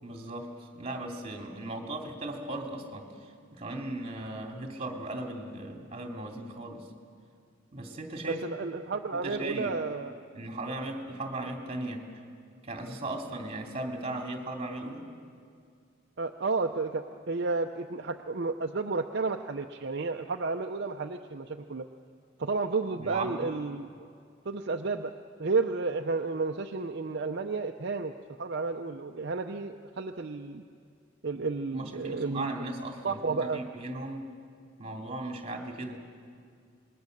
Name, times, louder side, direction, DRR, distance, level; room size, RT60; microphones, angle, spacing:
voice 1, 0.0-6.9 7.7-8.4 9.1-9.7 10.3-12.1 12.6-15.0 23.0-23.5 31.7-34.3 34.8-36.0, right 2 dB, 30° right, 2 dB, 2.7 m, -37 dB
voice 2, 8.3-10.1 16.2-21.9 22.4-24.1 24.5-25.1 25.4-28.1 28.4-30.6 31.2-32.5 33.0-33.6, right 3 dB, 55° right, 4 dB, 0.7 m, -32 dB
26.5 x 21.0 x 6.6 m, 2.3 s
head